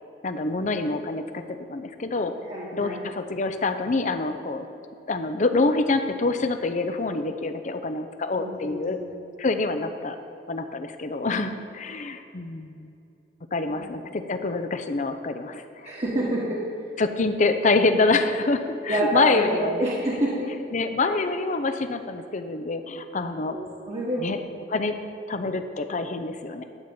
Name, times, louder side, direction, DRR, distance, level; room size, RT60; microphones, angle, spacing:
voice 1, 0.2-2.3 2.7-4.6 5.1-9.0 9.4-10.2 10.5-12.9 13.5-15.9 17.0-19.8 20.7-23.6 24.2-24.4 24.7-24.9 25.3-26.6, left 3 dB, 45° left, 8 dB, 0.6 m, -26 dB
voice 2, 2.4-3.1 8.4-9.1 13.7-13.8 15.8-16.6 18.9-20.5 23.5-24.4, right 1 dB, 35° right, -7 dB, 1.4 m, -28 dB
12.0 x 4.2 x 7.7 m, 2.7 s
head